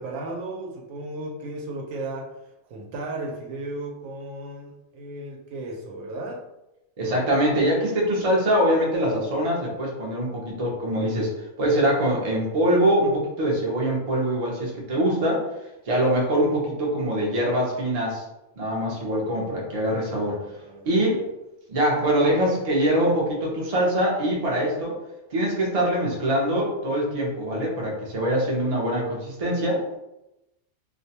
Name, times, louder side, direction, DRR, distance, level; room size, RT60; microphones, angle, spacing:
voice 1, 0.0-2.3 2.6-6.4 20.6-21.0, right 2 dB, 80° right, 0 dB, 1.0 m, -35 dB
voice 2, 7.0-11.3 11.6-15.4 15.9-18.2 18.6-20.4 20.9-21.2 21.7-25.0 25.3-29.8, right 1 dB, 45° right, -3 dB, 0.5 m, -23 dB
2.5 x 2.1 x 2.7 m, 0.91 s
omnidirectional pair, 1.4 m